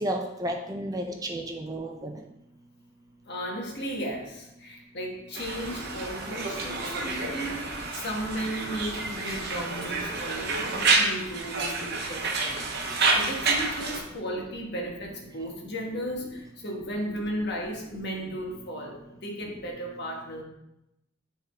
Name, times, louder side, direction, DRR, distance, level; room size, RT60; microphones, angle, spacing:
voice 1, 0.0-2.1, right 1 dB, 15° right, 3 dB, 0.5 m, -32 dB
voice 2, 3.3-20.4, equal, 55° left, 0 dB, 1.3 m, -35 dB
Conversation, 5.3-14.0, right 3 dB, 50° right, 0.9 m, -29 dB
9.5 x 3.7 x 3.4 m, 0.88 s
head